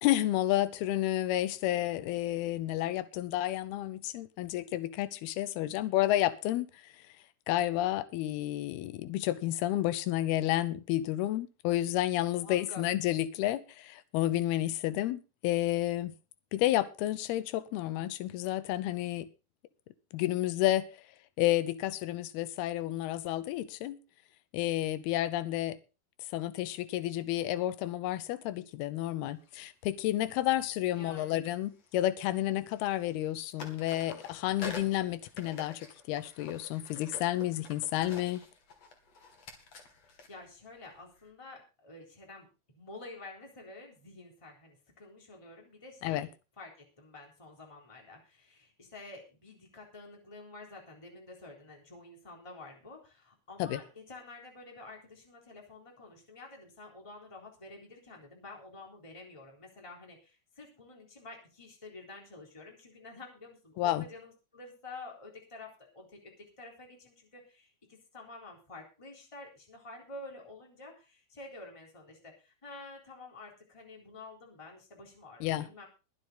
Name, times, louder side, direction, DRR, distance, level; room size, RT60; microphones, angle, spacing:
voice 1, 0.0-6.9 7.5-16.1 16.5-19.3 20.1-20.9 21.4-24.0 24.5-25.8 26.3-38.4 46.0-46.3 53.6-53.8 63.8-64.1 75.4-75.7, left 14 dB, 85° left, 15 dB, 2.8 m, -31 dB
voice 2, 12.4-12.9 30.9-31.4 40.3-42.5 42.7-46.3 46.6-75.8, left 2 dB, 10° left, 0 dB, 3.3 m, -49 dB
sound 1, 29.4-29.6 31.0-32.3 32.6-33.3 33.6-41.3, left 3 dB, 45° left, 3.4 m, -49 dB
22.0 x 7.6 x 4.0 m, 0.31 s
omnidirectional pair, 4.4 m